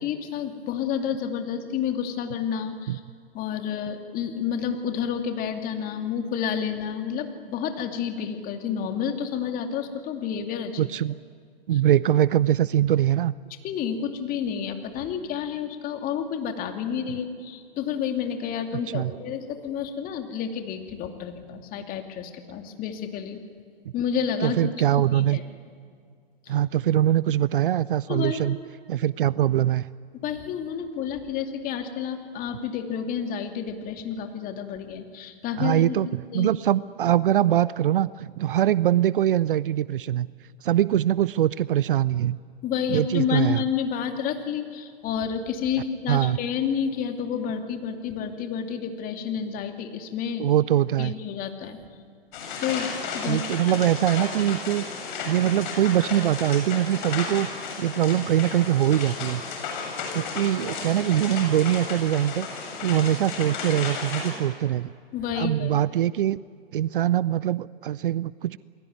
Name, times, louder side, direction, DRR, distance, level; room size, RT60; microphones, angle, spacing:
voice 1, 0.0-3.0 3.3-10.9 11.7-11.8 13.6-23.4 23.9-24.7 25.1-25.4 28.1-28.5 30.2-36.0 36.3-36.5 42.6-50.5 51.0-51.8 52.6-53.8 65.1-65.7, left 8 dB, 30° left, 5 dB, 2.6 m, -30 dB
voice 2, 10.8-11.1 11.7-13.3 17.1-17.2 18.9-19.1 24.4-25.4 26.5-28.6 28.9-29.9 35.6-40.3 40.6-42.4 42.9-43.6 46.1-46.4 50.4-51.1 53.3-54.9 55.2-59.4 60.1-64.9 65.3-66.4 66.7-68.6, right 12 dB, 65° right, 19 dB, 0.6 m, -23 dB
sound 1, 52.3-64.3, left 5 dB, 50° left, 7.9 m, -33 dB
28.5 x 21.0 x 9.4 m, 2.1 s
figure-of-eight pair, 110°, 29 cm